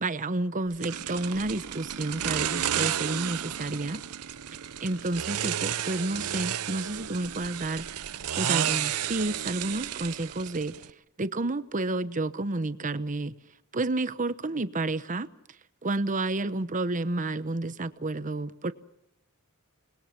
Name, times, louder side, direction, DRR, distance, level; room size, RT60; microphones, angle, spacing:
voice 1, 0.0-4.0 4.8-7.9 8.3-10.7 11.2-13.3 13.7-15.3 15.8-18.7, right 2 dB, 35° right, 1.0 m, -30 dB
sound 1, 0.8-10.9, right 10 dB, 85° right, 0.8 m, -32 dB
30.0 x 21.0 x 6.0 m
head